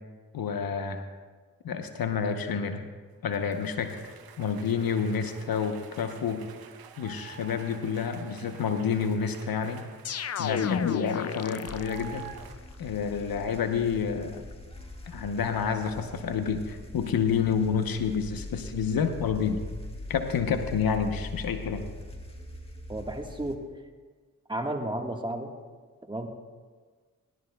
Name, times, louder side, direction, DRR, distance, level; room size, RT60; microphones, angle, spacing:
voice 1, 0.3-1.0 1.6-2.8 3.2-4.0 4.4-6.4 7.0-9.8 10.4-12.3 12.8-14.5 15.1-19.6 20.1-21.9, left 6 dB, 75° left, 7 dB, 0.9 m, -29 dB
sound 1, 3.3-12.6, right 9 dB, 80° right, 0.8 m, -49 dB
sound 2, 10.0-12.3, left 7 dB, 45° left, 0.5 m, -31 dB
sound 3, 11.7-23.6, left 2 dB, 15° left, 1.8 m, -42 dB
voice 2, 22.9-23.6 24.5-25.5 26.1-26.3, right 1 dB, 15° right, 3 dB, 1.4 m, -32 dB
18.5 x 11.5 x 2.3 m, 1.5 s
supercardioid pair, 40°, 36 cm